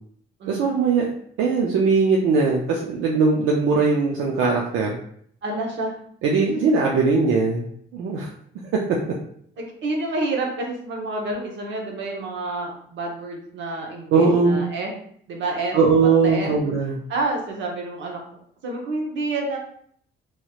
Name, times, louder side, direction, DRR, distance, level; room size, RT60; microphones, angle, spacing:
voice 1, 0.5-1.1 1.4-5.0 6.2-7.7 7.9-8.3 8.7-9.2 14.1-14.6 15.7-17.0, right 4 dB, 85° right, -2 dB, 0.5 m, -20 dB
voice 2, 5.4-6.0 6.4-6.6 9.6-14.9 15.3-16.5 17.1-18.2 18.6-19.6, right 2 dB, 65° right, 0 dB, 0.9 m, -29 dB
3.1 x 2.9 x 2.3 m, 0.63 s
cardioid pair, 90°, 20 cm